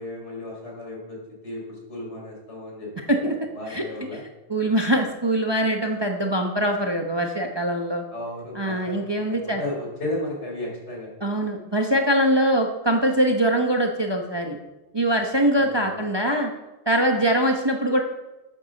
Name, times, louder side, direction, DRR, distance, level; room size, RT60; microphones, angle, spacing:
voice 1, 0.0-3.2 3.5-4.2 8.1-9.0 9.3-11.1 15.5-16.0, left 1 dB, 60° left, -2 dB, 4.2 m, -34 dB
voice 2, 3.1-3.8 4.1-4.2 4.5-8.0 8.5-9.6 11.2-14.6 14.9-16.5 16.9-18.0, right 1 dB, 20° right, 2 dB, 1.0 m, -23 dB
9.4 x 8.8 x 6.6 m, 1.1 s
omnidirectional pair, 1.3 m